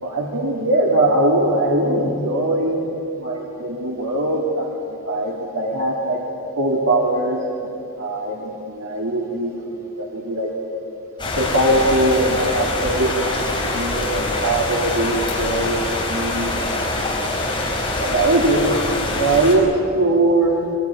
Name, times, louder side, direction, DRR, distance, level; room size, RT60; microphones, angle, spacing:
voice 1, 0.0-2.8 3.2-4.8 5.1-6.2 6.5-7.7 8.0-9.7 10.0-10.5 11.2-13.4 13.6-15.8 16.1-16.6 18.0-18.7 19.1-19.7 19.9-20.6, right 1 dB, 70° right, -2 dB, 2.6 m, -21 dB
sound 1, 11.2-19.6, left 2 dB, 20° left, 5.1 m, -24 dB
24.0 x 20.0 x 9.9 m, 2.8 s
head